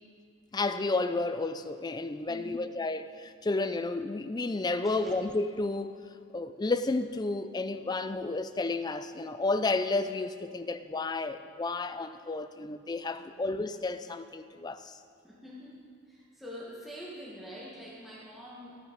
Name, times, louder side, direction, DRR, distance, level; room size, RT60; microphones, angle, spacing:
voice 1, 0.5-6.0 6.3-15.0, left 3 dB, 20° left, 11 dB, 0.4 m, -31 dB
voice 2, 2.3-2.7 4.7-5.2 13.1-13.5 15.2-18.8, equal, ahead, -6 dB, 1.4 m, -46 dB
14.0 x 9.6 x 5.1 m, 2.4 s
head